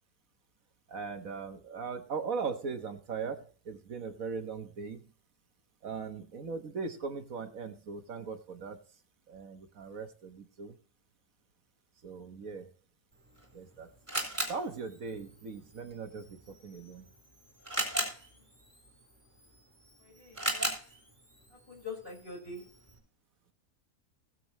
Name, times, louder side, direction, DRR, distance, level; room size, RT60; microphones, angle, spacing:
voice 1, 0.9-5.0 5.8-8.8 9.3-10.8 12.0-12.7 13.5-13.9 14.5-17.1, right 5 dB, 65° right, 6 dB, 1.6 m, -39 dB
Camera, 13.1-23.0, right 1 dB, 10° right, 4.4 m, -39 dB
voice 2, 20.0-20.7 21.5-22.6, left 3 dB, 35° left, 1 dB, 5.2 m, -45 dB
20.0 x 7.8 x 3.0 m, 0.39 s
omnidirectional pair, 1.6 m